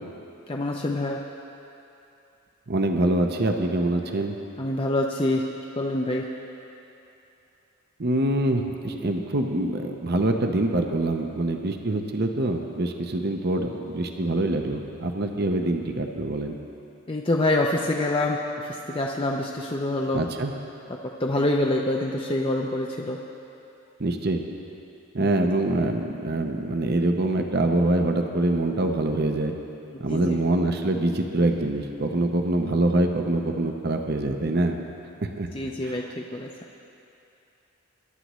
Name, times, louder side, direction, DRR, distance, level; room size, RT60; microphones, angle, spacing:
voice 1, 0.5-1.2 4.6-5.5 5.8-6.3 17.1-20.2 20.9-23.2 25.2-25.3 30.1-30.4 35.5-36.5, left 1 dB, 25° left, 0 dB, 0.5 m, -26 dB
voice 2, 2.7-4.3 8.0-16.5 20.1-20.5 24.0-24.4 25.1-29.5 30.0-34.8 35.2-35.5 35.8-36.0, right 2 dB, 45° right, 4 dB, 0.8 m, -25 dB
22.0 x 11.5 x 3.1 m, 2.8 s
head